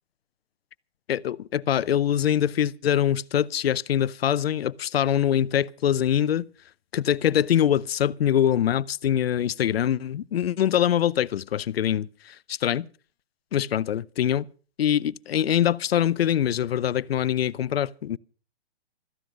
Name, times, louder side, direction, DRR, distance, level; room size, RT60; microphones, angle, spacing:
voice 1, 1.1-6.5 6.9-12.9 13.5-14.5 14.8-18.2, left 10 dB, 65° left, 0.7 m, -24 dB
16.0 x 14.0 x 5.1 m
hypercardioid pair, 145°, 32 cm